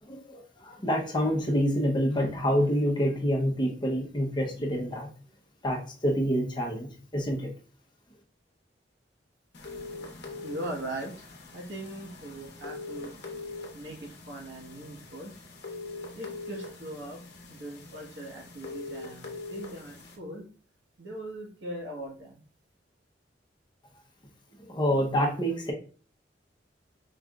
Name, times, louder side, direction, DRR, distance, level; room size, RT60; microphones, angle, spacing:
voice 1, 0.0-5.1 5.6-7.5 24.5-25.7, equal, 25° left, 0 dB, 0.8 m, -27 dB
sound 1, 9.5-20.2, left 3 dB, 65° left, 0.9 m, -43 dB
voice 2, 10.4-11.1 11.5-13.1 13.7-15.3 16.1-17.2 17.5-20.4 21.0-22.4, right 1 dB, 70° right, -1 dB, 1.3 m, -40 dB
4.8 x 3.2 x 2.4 m, 0.40 s
head